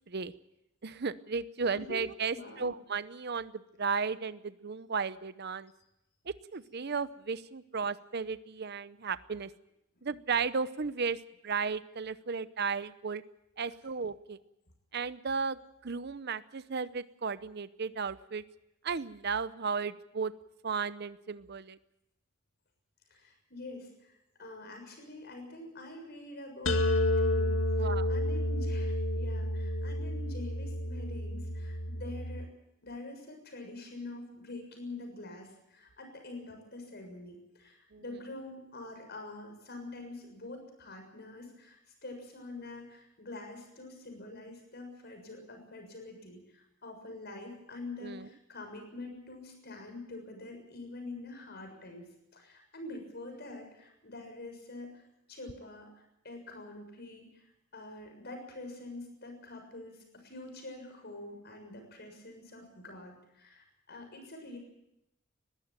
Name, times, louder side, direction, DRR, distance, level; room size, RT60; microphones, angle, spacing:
voice 1, 0.8-5.7 6.3-9.5 10.0-13.2 13.6-14.4 14.9-18.4 18.8-20.3 20.6-21.8 27.8-28.1 37.9-38.0 48.0-48.3, right 5 dB, 55° right, 15 dB, 0.8 m, -34 dB
voice 2, 2.3-2.7 23.1-32.5 32.8-52.1 52.3-55.0 55.3-64.6, left 2 dB, 55° left, 4 dB, 6.9 m, -46 dB
sound 1, 26.7-32.5, left 1 dB, 75° left, 2.0 m, -30 dB
20.5 x 15.5 x 9.2 m, 0.85 s
head